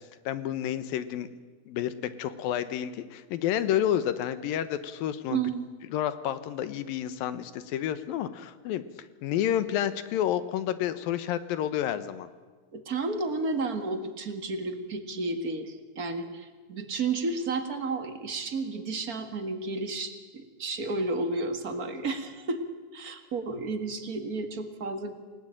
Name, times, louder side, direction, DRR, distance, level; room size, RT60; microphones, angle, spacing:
voice 1, 0.3-1.3 1.7-5.4 5.9-8.8 9.2-12.3, left 11 dB, 90° left, 13 dB, 2.9 m, -30 dB
voice 2, 5.3-5.7 12.7-22.6 22.9-25.1, right 3 dB, 35° right, 7 dB, 1.5 m, -32 dB
28.5 x 17.5 x 9.0 m, 1.4 s
omnidirectional pair, 4.0 m